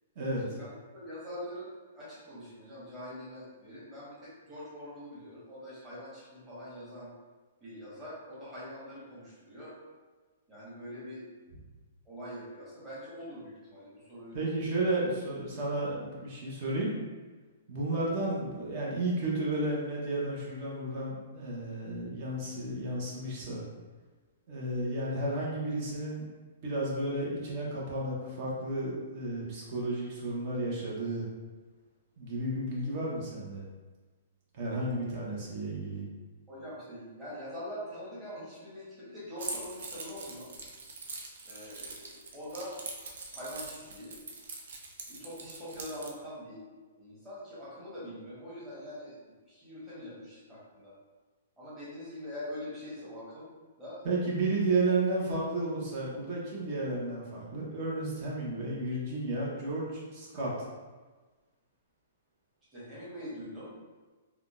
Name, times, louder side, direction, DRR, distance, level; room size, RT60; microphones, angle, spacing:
voice 1, 0.4-7.1 7.6-9.7 10.5-11.2 12.1-14.4 36.5-40.5 41.4-42.7 43.3-44.1 45.1-46.6 47.0-49.2 49.5-50.9 51.6-53.5 53.8-54.0 62.7-63.7, equal, 10° right, -10 dB, 1.2 m, -43 dB
voice 2, 14.3-17.0 17.7-23.6 24.5-26.3 26.6-31.3 32.2-33.7 34.5-36.0 54.0-60.5, right 2 dB, 40° right, -5 dB, 0.9 m, -32 dB
Keys jangling, 39.4-46.1, right 3 dB, 75° right, 0.5 m, -43 dB
3.6 x 2.3 x 2.5 m, 1.3 s
hypercardioid pair, 160°, 0 cm